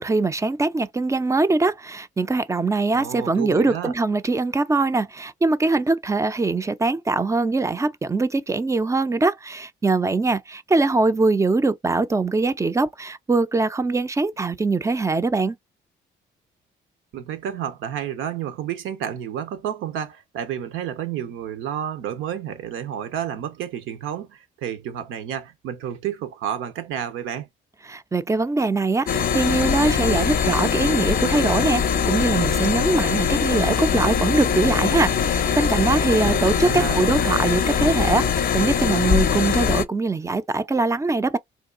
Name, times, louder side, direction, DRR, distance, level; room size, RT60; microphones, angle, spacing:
voice 1, 0.0-15.6 27.9-41.4, right 3 dB, 15° right, 0.3 m, -22 dB
voice 2, 2.9-3.9 17.1-27.5 36.2-37.0, right 9 dB, 85° right, 0.8 m, -30 dB
sound 1, 29.1-39.8, left 7 dB, 50° left, 0.5 m, -22 dB
3.6 x 2.3 x 2.4 m
cardioid pair, 90°, 20 cm